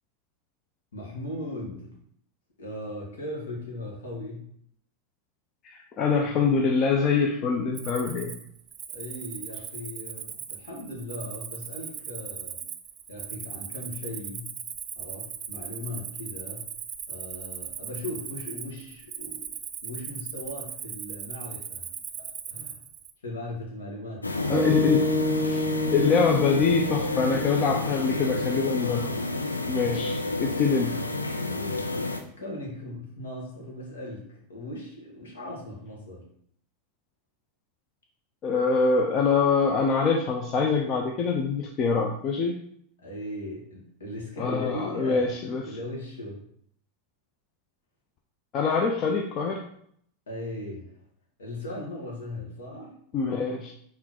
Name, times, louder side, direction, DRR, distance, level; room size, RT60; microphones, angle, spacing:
voice 1, 0.9-1.9 2.6-4.5 8.9-12.7 13.1-14.5 15.0-16.7 17.1-19.5 19.8-21.9 22.2-22.8 23.2-24.7 31.4-36.3 43.0-45.3 45.6-46.4 50.3-50.9 51.4-52.9, left 1 dB, 70° left, -2 dB, 2.1 m, -38 dB
voice 2, 5.6-8.4 24.5-25.1 25.4-25.6 25.9-29.1 29.7-31.0 38.4-42.6 44.4-45.8 48.5-49.7 53.1-53.7, left 5 dB, 40° left, 2 dB, 0.7 m, -24 dB
Cricket, 7.7-23.1, right 8 dB, 35° right, 0.7 m, -39 dB
sound 1, 24.2-32.2, left 2 dB, 90° left, 0.5 m, -30 dB
sound 2, 24.5-28.9, equal, 5° right, 1.1 m, -29 dB
6.0 x 3.8 x 4.4 m, 0.66 s
figure-of-eight pair, 85°, 0 cm